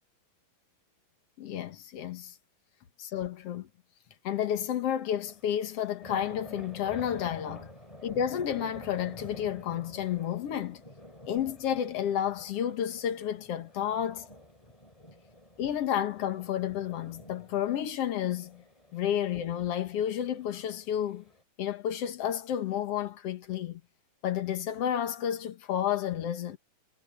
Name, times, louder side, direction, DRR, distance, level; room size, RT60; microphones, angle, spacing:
voice 1, 1.4-2.3 3.0-3.7 4.2-7.7 8.0-10.8 11.3-14.3 15.6-18.6 18.9-21.2 21.6-23.8 24.2-26.6, left 10 dB, 65° left, 1.5 m, -31 dB
sound 1, 5.1-21.4, left 1 dB, 10° left, 4.7 m, -50 dB
omnidirectional pair, 4.6 m